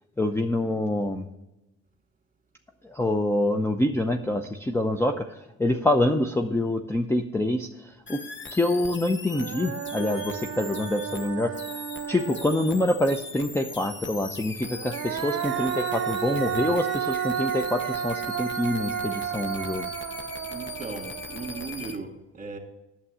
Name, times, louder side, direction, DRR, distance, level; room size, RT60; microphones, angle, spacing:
voice 1, 0.2-1.3 2.8-8.2 8.5-11.5 12.1-19.9, left 1 dB, 10° left, 5 dB, 0.6 m, -26 dB
sound 1, 8.1-22.0, left 4 dB, 40° left, 1.0 m, -40 dB
Human voice, 8.8-8.9 9.3-13.0 14.6-21.9, right 9 dB, 55° right, 0.7 m, -32 dB
voice 2, 20.5-22.6, right 4 dB, 25° right, 3 dB, 2.2 m, -37 dB
8.7 x 7.3 x 6.3 m, 0.96 s
cardioid pair, 90°, 30 cm